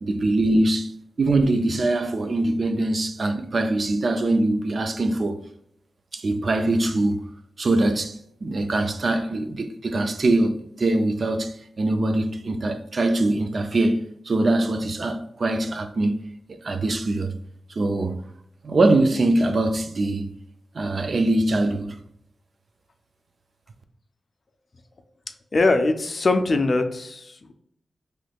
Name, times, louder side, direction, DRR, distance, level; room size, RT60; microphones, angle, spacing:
voice 1, 0.0-0.9 1.2-5.4 6.1-7.2 7.6-16.1 16.6-17.4 17.7-18.2 18.6-20.3 20.7-22.0, right 2 dB, 50° right, 0.4 m, -23 dB
voice 2, 25.5-27.5, left 2 dB, 45° left, 0.4 m, -22 dB
3.3 x 3.0 x 2.3 m
wide cardioid pair, 100°, 0 cm